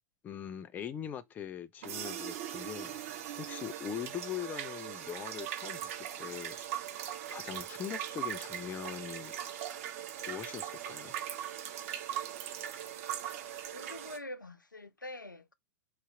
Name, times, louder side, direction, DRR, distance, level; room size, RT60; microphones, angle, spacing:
voice 1, 0.2-3.0 3.4-6.6 7.3-9.3 10.3-11.1, left 9 dB, 15° left, 0.3 m, -41 dB
sound 1, 1.8-14.2, right 10 dB, 50° right, 0.7 m, -40 dB
voice 2, 13.7-15.5, left 1 dB, 90° left, 0.4 m, -45 dB
3.0 x 2.9 x 3.5 m
figure-of-eight pair, 100°, 10 cm